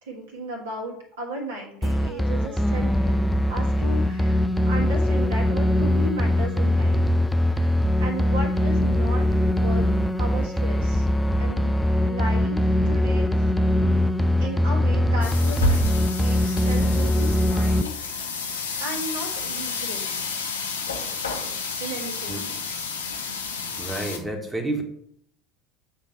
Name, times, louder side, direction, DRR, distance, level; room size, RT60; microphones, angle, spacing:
voice 1, 0.0-3.2 3.5-7.0 7.5-7.7 8.0-9.9 10.2-11.1 11.4-12.6 12.8-13.3 14.4-18.3 18.8-20.0 21.8-22.5, right 1 dB, 65° right, 0 dB, 1.5 m, -35 dB
sound 1, 1.8-17.8, left 1 dB, 5° left, 0.3 m, -22 dB
sound 2, 15.2-24.2, left 3 dB, 80° left, 0.8 m, -30 dB
voice 2, 23.8-24.8, right 2 dB, 10° right, 1 dB, 1.2 m, -29 dB
7.0 x 2.8 x 5.7 m, 0.69 s
figure-of-eight pair, 65°, 0 cm